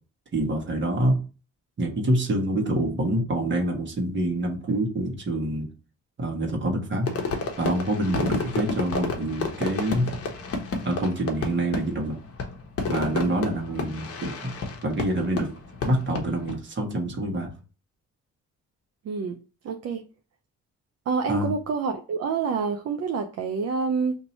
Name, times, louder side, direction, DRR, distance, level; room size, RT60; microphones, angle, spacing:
voice 1, 0.3-1.2 1.8-5.7 6.2-7.1 7.6-10.1 10.8-12.2 12.9-14.5 14.8-15.5 15.8-17.5 21.3-21.5, right 1 dB, 40° right, 1.3 m, -26 dB
Fireworks, 7.1-16.6, left 4 dB, 50° left, 1.0 m, -31 dB
voice 2, 19.0-19.4 19.6-20.1 21.1-24.1, right 5 dB, 55° right, 0.6 m, -27 dB
2.9 x 2.7 x 4.2 m
cardioid pair, 90°, 30 cm